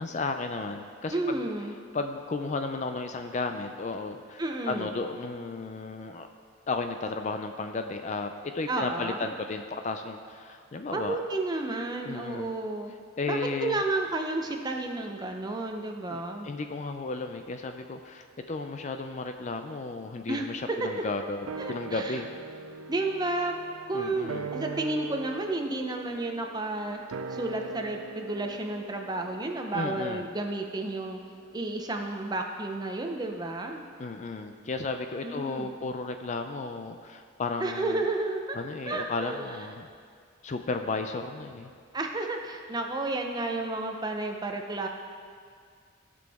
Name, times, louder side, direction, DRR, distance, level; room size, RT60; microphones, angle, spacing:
voice 1, 0.0-1.4 1.9-6.3 6.7-11.2 12.0-12.5 13.2-13.8 16.1-22.3 23.9-24.5 29.7-30.3 34.0-38.0 38.6-39.9 40.4-41.7, left 3 dB, 35° left, 6 dB, 0.4 m, -34 dB
voice 2, 1.1-1.8 4.4-4.9 8.7-9.3 10.9-12.9 13.3-16.5 20.3-20.5 21.6-22.2 22.9-23.5 23.9-27.0 27.3-31.2 31.5-33.8 35.2-35.8 37.6-38.6 38.9-39.4 41.9-44.9, right 2 dB, 20° right, 3 dB, 0.7 m, -31 dB
sound 1, 21.5-32.1 32.3-32.4, right 4 dB, 90° right, 0.5 m, -42 dB
16.0 x 6.2 x 3.5 m, 2.1 s
head